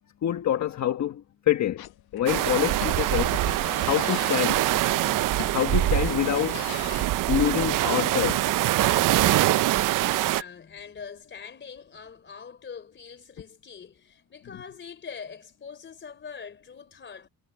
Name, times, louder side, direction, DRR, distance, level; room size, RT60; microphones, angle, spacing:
voice 1, 0.2-1.8 2.1-3.4 3.8-4.7 5.5-6.6 7.3-8.5, left 11 dB, 50° left, 1.3 m, -26 dB
sound 1, 1.8-7.2, left 15 dB, 80° left, 1.3 m, -40 dB
sound 2, 2.3-10.4, right 15 dB, 55° right, 0.6 m, -24 dB
voice 2, 10.1-17.3, left 6 dB, 30° left, 3.6 m, -43 dB
cardioid pair, 140°, 37 cm